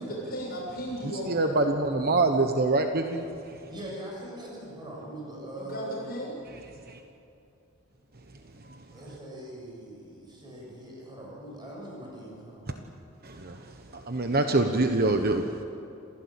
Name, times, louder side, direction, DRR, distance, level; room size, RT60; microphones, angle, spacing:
voice 1, 0.0-1.6 5.5-6.4, equal, 45° left, -4 dB, 7.1 m, -35 dB
voice 2, 1.0-3.6 6.9-7.0 8.6-8.8 12.7-12.8 13.2-15.6, right 2 dB, 45° right, 5 dB, 1.1 m, -26 dB
voice 3, 3.7-6.1 8.9-12.6, right 1 dB, 20° right, -3 dB, 7.0 m, -41 dB
27.5 x 16.5 x 8.6 m, 2.7 s
head